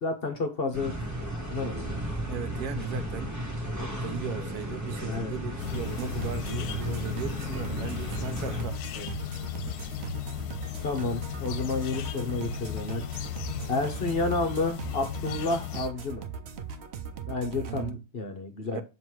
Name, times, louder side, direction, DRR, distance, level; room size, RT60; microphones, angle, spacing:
voice 1, 0.0-0.9 1.5-1.9 5.0-5.3 8.9-9.1 10.8-13.0 13.7-16.2 17.3-18.8, left 3 dB, 50° left, 0.8 m, -30 dB
sound 1, 0.7-8.6, equal, 15° right, 1.0 m, -34 dB
voice 2, 2.3-3.3 3.8-8.8 13.5-13.8 17.5-18.0 18.6-18.8, right 7 dB, 75° right, 1.2 m, -37 dB
sound 2, 5.6-15.9, left 11 dB, 80° left, 1.1 m, -36 dB
sound 3, 5.7-17.9, right 7 dB, 55° right, 0.7 m, -40 dB
7.3 x 3.0 x 4.6 m
omnidirectional pair, 1.7 m